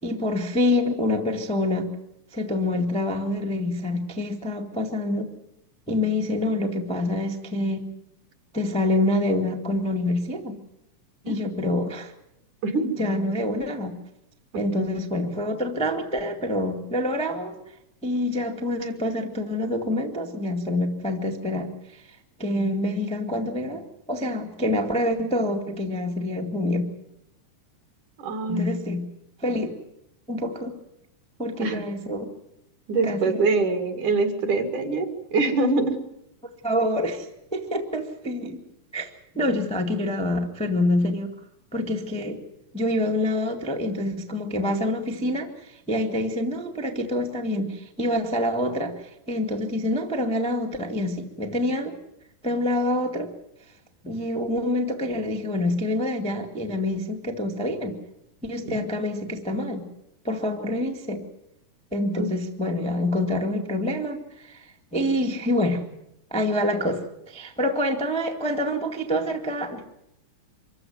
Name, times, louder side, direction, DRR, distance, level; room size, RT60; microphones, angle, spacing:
voice 1, 0.0-1.9 2.3-5.3 5.9-7.9 8.5-10.6 11.2-12.1 13.0-14.0 14.5-17.7 18.0-26.9 28.5-29.0 29.4-29.8 30.3-30.8 31.4-32.3 33.0-33.4 36.6-38.6 38.9-41.3 41.7-42.4 42.7-52.0 52.4-53.3 54.0-58.0 58.4-59.9 60.2-61.2 61.9-65.8 66.3-69.9, left 1 dB, 5° left, 2 dB, 0.7 m, -26 dB
voice 2, 28.2-28.7 31.6-31.8 32.9-36.0 58.7-58.9 62.2-62.3, right 3 dB, 60° right, 7 dB, 3.4 m, -24 dB
25.0 x 14.5 x 9.3 m, 0.84 s
omnidirectional pair, 4.0 m